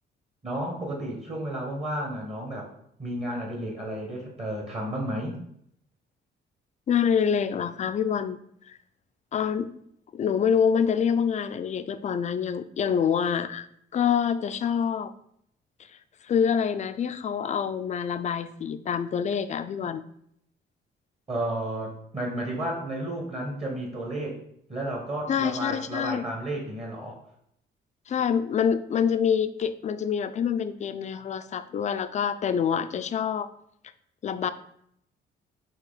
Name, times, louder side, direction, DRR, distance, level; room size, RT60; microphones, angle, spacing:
voice 1, 0.4-2.7 3.0-5.4 21.3-24.4 24.7-27.2, right 1 dB, 30° right, 0 dB, 1.3 m, -32 dB
voice 2, 6.9-8.4 8.7-8.8 9.3-9.7 10.1-13.7 13.9-15.1 16.2-20.0 25.3-26.2 28.1-33.5 34.2-34.5, left 7 dB, 35° left, 12 dB, 0.3 m, -26 dB
4.5 x 2.9 x 4.0 m, 0.70 s
cardioid pair, 90°, 20 cm